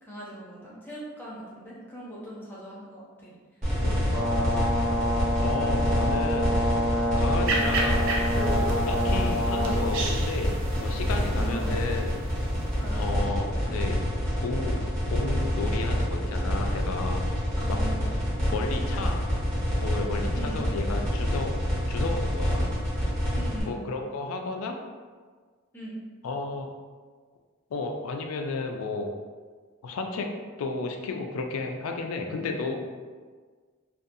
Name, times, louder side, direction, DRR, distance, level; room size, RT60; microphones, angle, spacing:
voice 1, 0.0-3.3 3.8-4.1 11.3-11.8 12.8-13.0 17.6-18.2 20.3-20.6 23.3-23.8 25.7-26.0, right 1 dB, 10° left, -7 dB, 0.5 m, -40 dB
sound 1, 3.6-23.6, equal, 35° right, 0.9 m, -27 dB
Brass instrument, 4.1-9.9, equal, 80° right, 1.0 m, -28 dB
voice 2, 5.4-6.5 7.2-12.1 13.0-14.0 14.4-17.2 17.7-17.8 18.5-19.2 19.8-21.5 21.9-22.7 23.7-24.8 26.2-26.7 27.7-29.1 29.8-30.3 30.6-32.8, left 3 dB, 85° left, 4 dB, 0.3 m, -32 dB
sound 2, 7.4-13.0, right 2 dB, 65° right, 0.4 m, -34 dB
2.5 x 2.3 x 2.6 m, 1.5 s
head